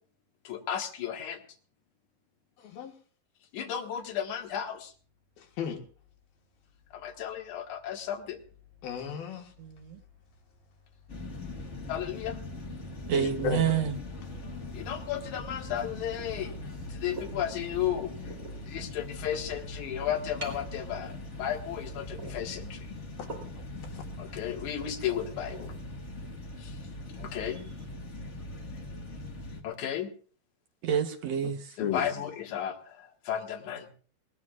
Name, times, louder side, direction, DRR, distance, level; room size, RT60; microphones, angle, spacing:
voice 1, 0.4-1.4 3.5-4.9 6.9-8.4 11.9-12.4 14.7-18.3 18.6-22.9 24.2-25.7 26.6-26.9 27.2-27.6 29.6-30.1 31.8-33.9, left 10 dB, 60° left, 3.0 m, -34 dB
voice 2, 2.6-2.9 5.4-5.8 8.8-9.5 13.1-13.7 23.2-23.3 23.9-24.0 31.8-32.0, left 7 dB, 80° left, 3.3 m, -34 dB
sound 1, 4.0-22.5, left 7 dB, 15° left, 5.1 m, -56 dB
voice 3, 9.6-10.0 13.1-14.0 30.8-31.8, right 8 dB, 65° right, 1.7 m, -28 dB
sound 2, 11.1-29.6, left 2 dB, 40° left, 1.0 m, -41 dB
sound 3, 16.1-27.9, right 2 dB, 25° right, 3.2 m, -49 dB
20.0 x 19.0 x 2.5 m
omnidirectional pair, 4.2 m